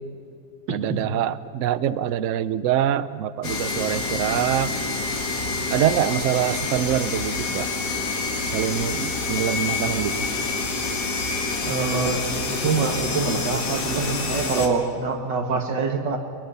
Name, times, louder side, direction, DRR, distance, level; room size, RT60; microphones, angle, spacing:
voice 1, 0.7-4.7 5.7-7.7 8.5-10.3, right 10 dB, 65° right, 14 dB, 0.8 m, -24 dB
sound 1, 3.4-14.7, left 3 dB, 65° left, 2.3 m, -27 dB
voice 2, 11.7-12.2 12.5-16.2, right 4 dB, 85° right, 5 dB, 2.4 m, -25 dB
23.5 x 21.0 x 5.7 m, 2.4 s
omnidirectional pair, 1.9 m